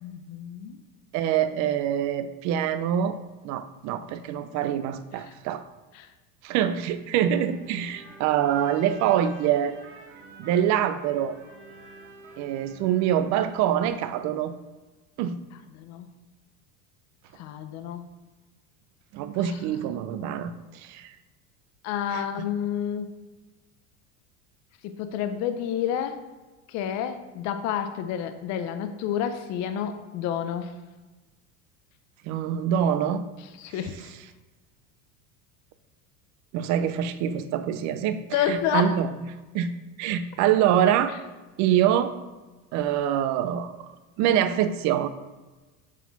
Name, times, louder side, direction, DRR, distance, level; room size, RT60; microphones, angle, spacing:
voice 1, 0.0-0.8 5.1-5.3 5.9-6.1 15.7-16.1 17.3-18.0 19.4-19.6 21.8-23.1 24.8-26.2 26.7-30.7 33.6-34.1 38.3-39.0, left 9 dB, 45° left, 9 dB, 0.6 m, -29 dB
voice 2, 1.1-3.2 3.4-5.6 6.4-9.7 10.4-11.4 12.4-14.5 15.2-15.4 19.1-21.1 22.1-22.2 32.3-33.2 36.5-38.2 38.5-39.1 39.5-39.7 40.0-41.1 41.6-42.1 42.7-43.8 44.2-45.1, right 10 dB, 45° right, 11 dB, 0.5 m, -25 dB
sound 1, 7.3-13.9, right 3 dB, 30° right, 1.1 m, -48 dB
7.3 x 4.2 x 4.1 m, 1.2 s
supercardioid pair, 140°, 40 cm